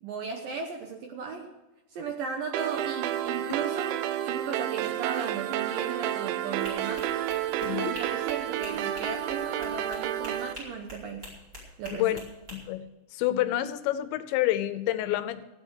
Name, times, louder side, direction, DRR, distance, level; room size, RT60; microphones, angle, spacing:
voice 1, 0.0-1.5 1.9-4.0 4.2-7.1 7.7-11.3 11.8-12.2, right 5 dB, 75° right, 4 dB, 2.2 m, -36 dB
sound 1, 2.5-10.5, right 12 dB, 90° right, 3.1 m, -30 dB
sound 2, 6.6-12.6, equal, 20° right, 4.8 m, -45 dB
voice 2, 7.6-8.0 11.9-12.2 12.5-15.4, left 14 dB, 80° left, 12 dB, 2.9 m, -28 dB
15.0 x 9.2 x 6.5 m, 1.0 s
omnidirectional pair, 5.3 m